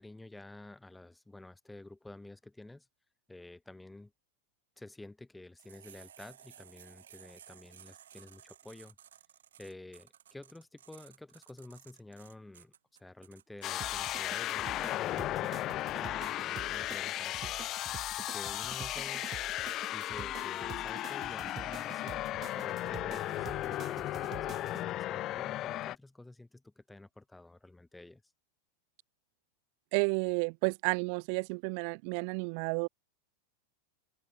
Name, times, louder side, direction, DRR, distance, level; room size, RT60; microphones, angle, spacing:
voice 1, 0.0-2.9 3.3-4.1 4.8-9.0 9.6-12.7 13.0-17.6 18.1-19.3 19.9-22.2 22.5-28.2, left 2 dB, 5° left, 6.8 m, -50 dB
sound 1, 5.6-13.7, right 10 dB, 65° right, 7.2 m, -56 dB
sound 2, 13.6-25.9, left 14 dB, 35° left, 0.4 m, -35 dB
sound 3, 13.8-24.8, right 9 dB, 25° right, 4.3 m, -48 dB
voice 2, 29.9-32.9, right 40 dB or more, 45° right, 0.9 m, -31 dB
open air
figure-of-eight pair, 90°, 0 cm